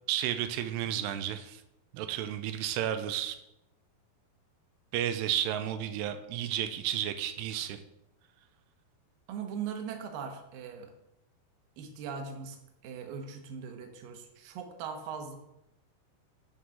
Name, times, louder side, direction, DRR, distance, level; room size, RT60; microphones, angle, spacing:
voice 1, 0.1-1.6 1.9-3.4 4.9-7.8, right 11 dB, 90° right, 9 dB, 2.7 m, -32 dB
voice 2, 9.3-10.9 11.8-12.6 12.8-15.4, right 6 dB, 70° right, 4 dB, 2.4 m, -40 dB
8.6 x 3.8 x 7.0 m, 0.87 s
omnidirectional pair, 4.6 m